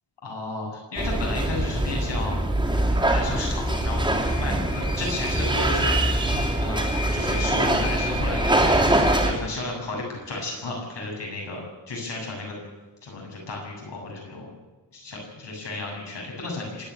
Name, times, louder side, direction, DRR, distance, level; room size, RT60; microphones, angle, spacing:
voice 1, 0.2-2.4 2.8-4.0 4.4-6.8 7.1-11.6 11.9-12.5 13.0-14.5 14.9-16.9, left 2 dB, 80° left, -1 dB, 8.0 m, -33 dB
sound 1, 1.0-9.3, right 1 dB, 10° right, 2.8 m, -23 dB
26.0 x 10.0 x 9.9 m, 1.1 s
wide cardioid pair, 175°, 41 cm